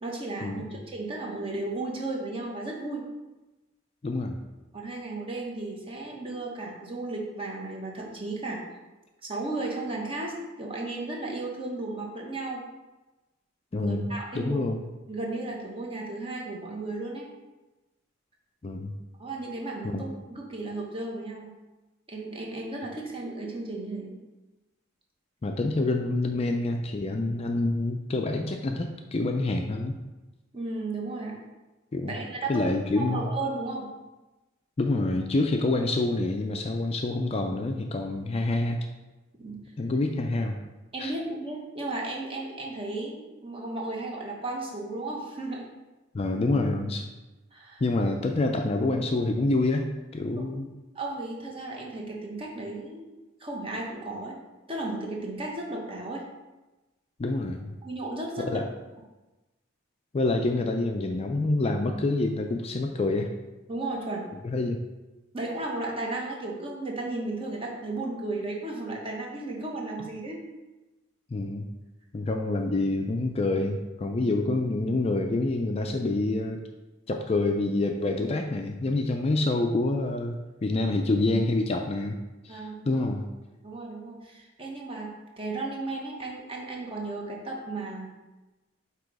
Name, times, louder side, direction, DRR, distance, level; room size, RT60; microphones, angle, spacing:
voice 1, 0.0-3.1 4.7-8.6 9.3-12.6 13.8-14.6 15.1-17.3 19.2-21.5 22.1-24.2 30.5-31.4 32.1-33.9 39.4-39.6 40.9-45.7 47.5-47.8 50.9-53.1 53.4-54.4 54.7-56.2 57.8-58.6 63.7-64.2 65.3-70.4 82.5-83.1 83.6-88.1, right 2 dB, 25° right, -1 dB, 1.1 m, -34 dB
voice 2, 4.0-4.4 13.7-14.8 18.6-18.9 19.9-20.0 25.4-30.0 31.9-32.2 32.5-33.3 34.8-38.9 39.8-40.6 41.0-41.1 46.1-47.1 47.8-49.9 50.1-50.7 57.2-57.8 58.4-58.6 60.1-63.3 64.4-64.8 71.3-71.7 72.1-76.6 77.1-82.2 82.4-83.2, left 2 dB, 30° left, 4 dB, 0.4 m, -27 dB
7.7 x 3.0 x 4.7 m, 1.1 s
head